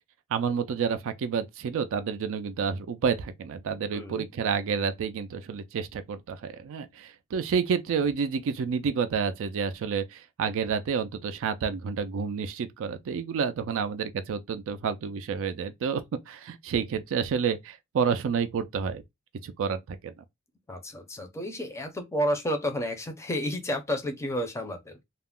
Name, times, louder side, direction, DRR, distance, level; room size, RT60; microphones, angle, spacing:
voice 1, 0.3-19.0 19.4-20.1, right 6 dB, 65° right, 0.3 m, -29 dB
voice 2, 3.9-4.3 20.7-25.0, equal, 15° left, 0.5 m, -31 dB
2.3 x 2.0 x 3.5 m
head